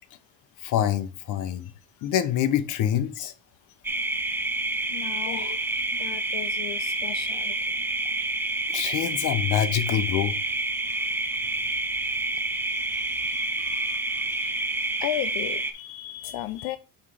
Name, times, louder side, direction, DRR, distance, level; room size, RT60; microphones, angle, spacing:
voice 1, 0.6-1.7 2.0-3.3 5.3-5.6 8.7-10.4, left 10 dB, 60° left, 0.9 m, -26 dB
sound 1, 3.8-15.7, right 2 dB, 5° right, 0.4 m, -28 dB
voice 2, 4.9-7.8 10.7-16.8, left 13 dB, 80° left, 0.6 m, -38 dB
5.7 x 4.4 x 4.8 m
cardioid pair, 160°, 36 cm